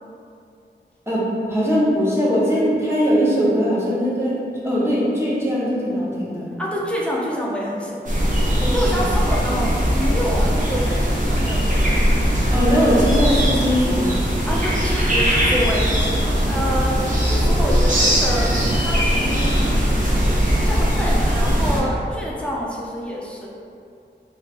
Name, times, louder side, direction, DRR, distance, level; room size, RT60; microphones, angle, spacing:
voice 1, 1.1-4.4 4.6-6.5 12.5-14.2, equal, 15° right, -8 dB, 1.0 m, -20 dB
voice 2, 6.6-12.0 14.4-23.5, equal, 5° left, -5 dB, 0.6 m, -27 dB
sound 1, 8.0-21.8, equal, 45° right, 0.7 m, -19 dB
3.1 x 2.5 x 3.3 m, 2.5 s
wide cardioid pair, 60°, 19 cm